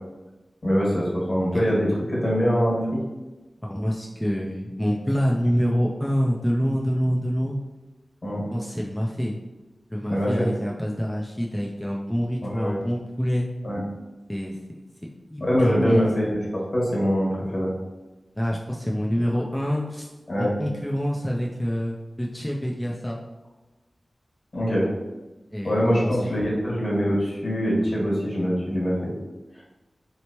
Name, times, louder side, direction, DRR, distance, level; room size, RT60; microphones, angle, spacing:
voice 1, 0.6-3.0 8.2-8.4 10.1-10.5 12.5-12.8 13.6-13.8 15.4-17.7 20.3-20.5 24.5-24.8 25.6-29.1, equal, 55° left, -6 dB, 1.4 m, -23 dB
voice 2, 3.6-7.6 8.5-9.4 9.9-13.5 14.3-14.8 15.3-16.1 18.4-20.1 20.4-23.2 25.5-26.4, equal, 10° left, -2 dB, 0.4 m, -26 dB
3.2 x 3.0 x 2.9 m, 1.1 s
wide cardioid pair, 80°, 0 cm